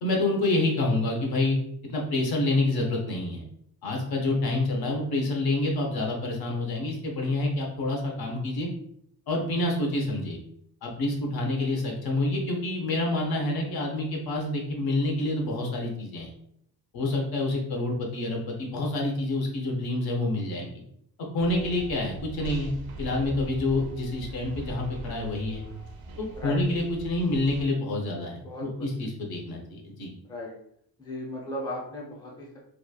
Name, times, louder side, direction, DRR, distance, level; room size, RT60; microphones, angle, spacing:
voice 1, 0.0-1.6 1.9-3.5 3.8-8.7 9.3-10.4 10.8-16.3 16.9-20.8 21.3-22.7 23.0-25.6 26.2-30.1, left 2 dB, 65° left, 0 dB, 0.7 m, -27 dB
sound 1, 21.4-27.7, right 2 dB, 65° right, 0.5 m, -41 dB
voice 2, 28.4-28.9 30.3-30.5 31.0-32.6, left 1 dB, 10° left, -4 dB, 0.5 m, -36 dB
3.0 x 2.3 x 2.3 m, 0.71 s
wide cardioid pair, 165°, 40 cm